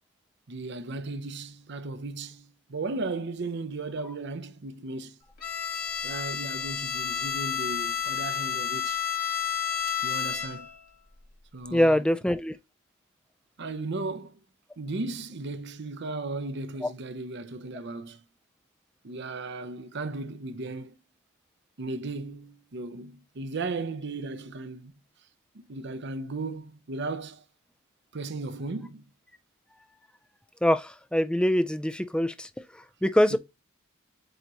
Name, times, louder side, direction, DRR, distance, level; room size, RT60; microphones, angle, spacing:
voice 1, 0.5-5.2 6.0-9.0 9.9-10.7 11.5-12.2 13.6-14.4 14.8-18.2 19.0-20.9 21.8-24.9 25.5-27.4 28.1-29.1 33.3-33.4, right 3 dB, 60° right, 0.7 m, -36 dB
Bowed string instrument, 5.4-10.8, left 8 dB, 50° left, 1.9 m, -31 dB
voice 2, 11.7-12.6 16.8-16.9 30.6-33.4, left 1 dB, 5° left, 0.4 m, -24 dB
7.9 x 4.0 x 3.0 m
head